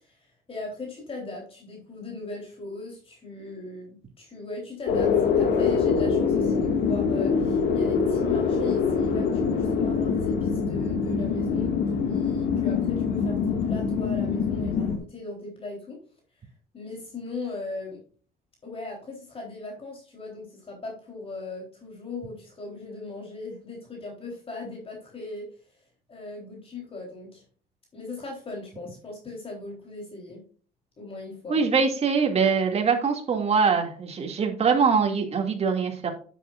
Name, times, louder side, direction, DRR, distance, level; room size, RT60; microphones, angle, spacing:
voice 1, 0.0-11.8 12.0-16.0 16.7-18.0 18.6-25.5 26.1-27.4 27.9-30.4 31.0-31.6, left 3 dB, 35° left, 0 dB, 3.6 m, -38 dB
sound 1, 4.9-15.0, left 5 dB, 75° left, 1.9 m, -24 dB
voice 2, 31.5-36.1, right 5 dB, 40° right, 3 dB, 2.3 m, -23 dB
9.7 x 8.5 x 2.5 m, 0.42 s
cardioid pair, 110°, 17 cm